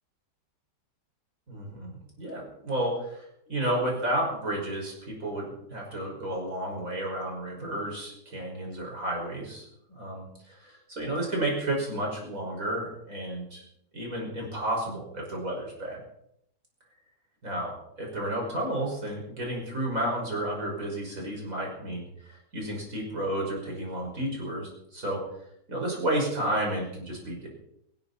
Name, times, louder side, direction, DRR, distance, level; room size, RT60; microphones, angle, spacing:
voice 1, 1.5-1.9 2.2-3.2 3.5-9.6 10.0-13.6 13.9-16.0 17.4-25.2 25.7-27.5, right 1 dB, 50° right, -1 dB, 6.0 m, -32 dB
18.5 x 18.0 x 4.2 m, 0.76 s
omnidirectional pair, 1.9 m